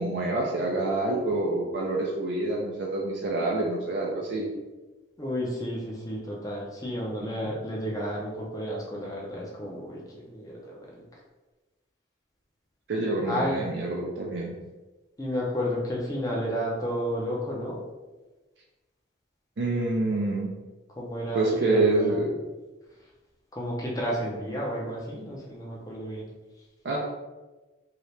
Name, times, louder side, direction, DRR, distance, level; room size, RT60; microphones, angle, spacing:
voice 1, 0.0-4.5 7.2-7.5 12.9-14.6 19.6-20.5 21.3-22.3 26.8-27.0, right 2 dB, 70° right, -2 dB, 0.5 m, -27 dB
voice 2, 5.2-11.0 13.2-13.6 15.2-17.8 21.0-22.2 23.5-26.2, equal, 20° left, -3 dB, 0.6 m, -32 dB
2.9 x 2.8 x 3.2 m, 1.2 s
head